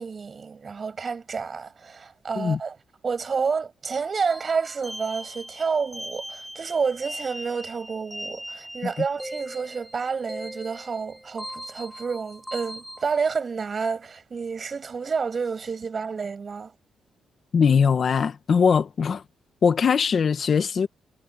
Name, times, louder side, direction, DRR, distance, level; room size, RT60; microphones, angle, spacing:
voice 1, 0.0-2.8 3.0-16.7, right 5 dB, 40° right, 6.8 m, -29 dB
sound 1, 4.3-13.0, equal, ahead, 7.1 m, -40 dB
voice 2, 17.5-19.2 19.6-20.9, left 6 dB, 50° left, 1.5 m, -21 dB
cardioid pair, 120°, 0 cm